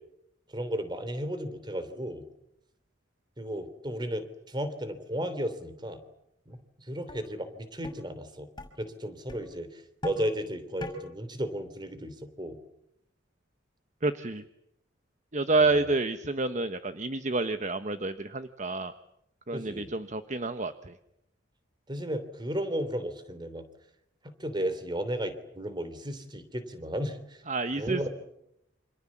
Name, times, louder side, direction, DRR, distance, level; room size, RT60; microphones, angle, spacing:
voice 1, 0.5-2.2 3.4-6.0 6.5-8.5 8.8-12.6 15.5-15.9 19.5-19.9 21.9-23.6 24.4-27.4 27.7-28.1, equal, 25° right, 11 dB, 3.2 m, -34 dB
sound 1, 6.5-6.6 7.1-7.2 7.8-8.0 8.6-8.7 9.3-9.4 10.0-10.3 10.8-11.0, left 1 dB, 20° left, 5.8 m, -38 dB
voice 2, 14.0-14.4 15.3-18.9 19.5-20.9 27.5-28.1, right 3 dB, 40° right, 10 dB, 1.2 m, -29 dB
28.5 x 26.5 x 7.4 m, 0.80 s
head